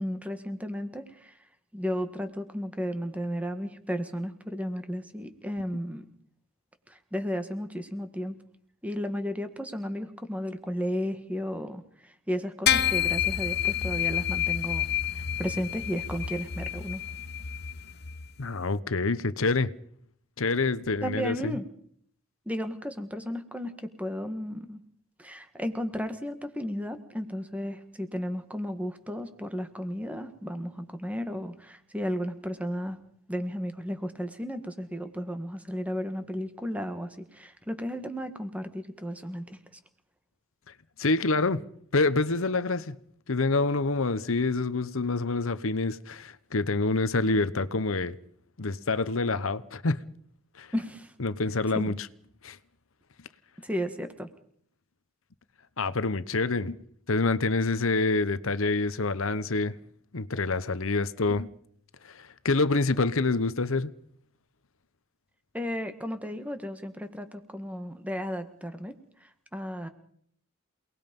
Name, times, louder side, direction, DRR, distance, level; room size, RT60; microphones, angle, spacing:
voice 1, 0.0-6.1 6.9-8.4 8.8-17.0 21.0-21.7 22.4-24.8 25.2-33.0 33.3-39.8 50.7-51.1 51.7-51.9 53.6-54.3 65.5-69.9, equal, 5° right, 1.8 m, -34 dB
sound 1, 12.7-18.3, left 10 dB, 50° left, 1.0 m, -29 dB
voice 2, 18.4-19.7 20.4-21.6 41.0-41.6 41.9-42.9 43.3-48.2 48.6-50.0 50.6-50.7 51.2-51.9 52.4-52.6 55.8-56.8 57.1-59.7 60.1-61.5 62.0-63.9, left 3 dB, 75° left, 1.0 m, -27 dB
28.5 x 19.5 x 5.4 m
head